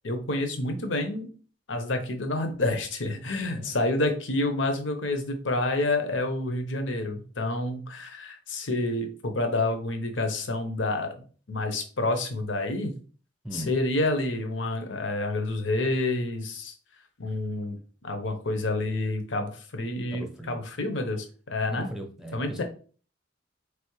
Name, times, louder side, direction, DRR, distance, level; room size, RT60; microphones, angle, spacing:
voice 1, 0.0-1.3 1.7-11.1 11.5-13.0 13.5-16.7 17.2-17.8 18.0-21.9 22.3-22.6, left 2 dB, 80° left, 5 dB, 0.9 m, -28 dB
voice 2, 13.4-13.8 20.1-20.6 21.7-22.6, equal, 5° right, 2 dB, 0.8 m, -38 dB
4.3 x 3.4 x 3.1 m, 0.40 s
head